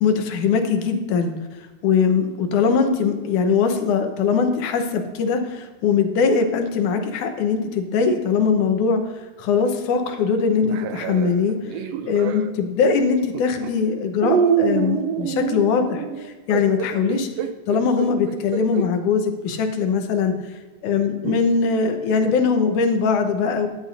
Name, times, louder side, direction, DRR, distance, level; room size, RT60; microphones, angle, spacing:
voice 1, 0.0-1.3 1.8-9.0 9.4-11.6 12.0-17.3 17.7-23.7, left 5 dB, 80° left, 5 dB, 2.4 m, -21 dB
sound 1, 10.6-12.5 13.3-13.7 14.2-18.9 19.5-19.6 21.2-21.4, right 7 dB, 80° right, 1.5 m, -25 dB
13.5 x 10.5 x 2.6 m, 1.3 s
omnidirectional pair, 3.6 m